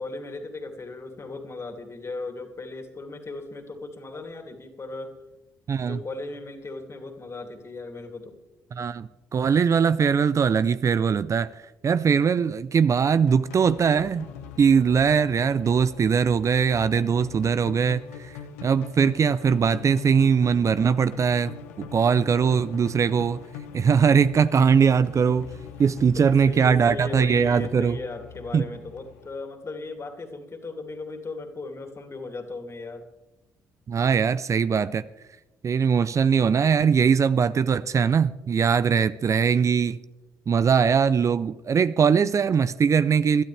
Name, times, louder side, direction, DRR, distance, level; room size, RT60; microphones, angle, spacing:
voice 1, 0.0-5.1 5.8-8.4 26.1-33.0, left 3 dB, 40° left, 2.8 m, -37 dB
voice 2, 5.7-6.0 8.8-11.5 11.8-14.3 14.6-18.3 18.6-23.4 23.7-25.5 25.8-28.0 28.5-28.7 33.9-35.0 35.6-40.0 40.5-43.4, right 6 dB, 45° right, 0.5 m, -21 dB
sound 1, 13.1-29.3, left 8 dB, 90° left, 1.0 m, -42 dB
21.5 x 12.5 x 3.4 m
hypercardioid pair, 50°, 8 cm